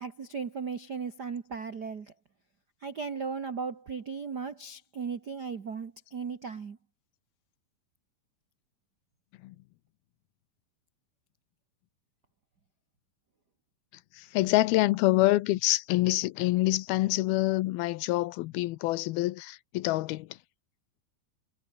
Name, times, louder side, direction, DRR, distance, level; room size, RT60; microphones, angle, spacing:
voice 1, 0.0-2.1 2.8-6.8, right 5 dB, 70° right, 0.9 m, -36 dB
voice 2, 14.1-20.3, left 18 dB, 80° left, 2.6 m, -26 dB
omnidirectional pair, 4.5 m